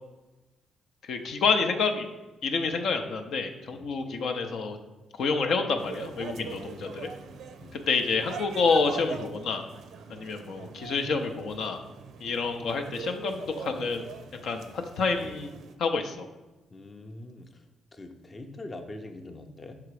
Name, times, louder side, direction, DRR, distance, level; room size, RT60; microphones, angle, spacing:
voice 1, 1.0-2.1 2.4-4.8 5.2-7.1 7.7-9.6 10.1-11.8 12.2-14.1 14.4-15.5 15.8-16.3, left 4 dB, 70° left, 5 dB, 0.6 m, -28 dB
sound 1, 5.8-15.7, right 6 dB, 75° right, 0.5 m, -43 dB
voice 2, 16.7-17.6 17.9-19.8, left 2 dB, 25° left, 5 dB, 0.6 m, -43 dB
5.8 x 3.8 x 4.7 m, 1.1 s
cardioid pair, 90°, 0 cm